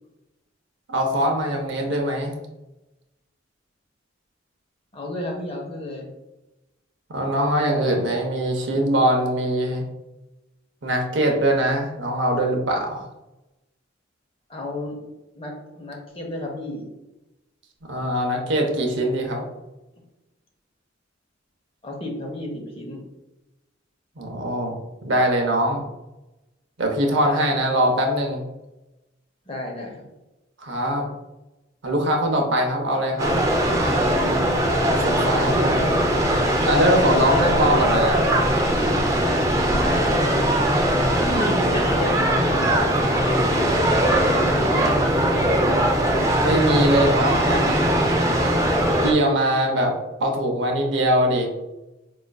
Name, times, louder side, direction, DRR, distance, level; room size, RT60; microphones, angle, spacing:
voice 1, 0.9-2.3 7.1-9.9 10.8-13.1 17.9-19.4 24.2-24.8 25.0-25.8 26.8-28.4 30.6-31.1 31.8-33.3 34.8-36.3 36.6-38.3 46.4-48.0 49.0-49.9 50.2-51.6, right 1 dB, 65° right, 2 dB, 0.6 m, -22 dB
voice 2, 4.9-6.1 14.5-15.0 15.3-16.8 21.8-23.0 27.2-27.4 29.5-30.1 39.8-40.4 41.2-44.0, left 1 dB, 30° left, 0 dB, 0.7 m, -32 dB
sound 1, 33.2-49.1, right 1 dB, 15° right, 0.5 m, -20 dB
4.9 x 2.4 x 2.3 m, 0.99 s
head